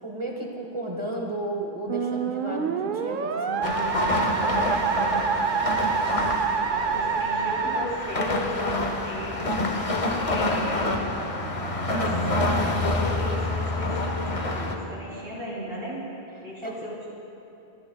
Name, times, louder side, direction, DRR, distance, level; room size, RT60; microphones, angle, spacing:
voice 1, 0.0-4.3 16.6-16.8, right 1 dB, 30° right, 0 dB, 1.0 m, -33 dB
Musical instrument, 1.9-8.8, right 6 dB, 60° right, 0.7 m, -27 dB
sound 1, 3.6-14.8, left 2 dB, 35° left, 0.9 m, -27 dB
voice 2, 5.5-6.1 6.7-9.6 10.1-10.8 11.9-16.0 16.3-17.1, equal, 85° right, -6 dB, 3.8 m, -36 dB
26.0 x 10.0 x 2.3 m, 2.8 s
omnidirectional pair, 1.1 m